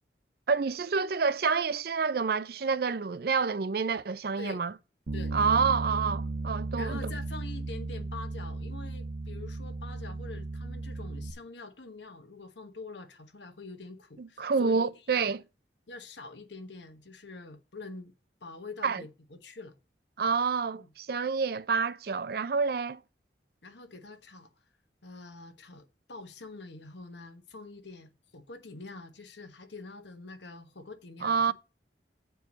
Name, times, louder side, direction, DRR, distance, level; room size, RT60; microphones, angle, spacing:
voice 1, 0.5-4.7 5.3-7.0 14.2-15.4 18.8-19.0 20.2-23.0 31.2-31.5, right 5 dB, 55° right, 0.5 m, -28 dB
Bass guitar, 5.1-11.3, right 3 dB, 80° right, 1.0 m, -35 dB
voice 2, 6.7-15.3 15.9-18.1 18.4-19.7 20.7-20.9 23.6-24.5 25.0-31.5, left 3 dB, 75° left, 1.3 m, -45 dB
7.7 x 4.6 x 7.2 m
head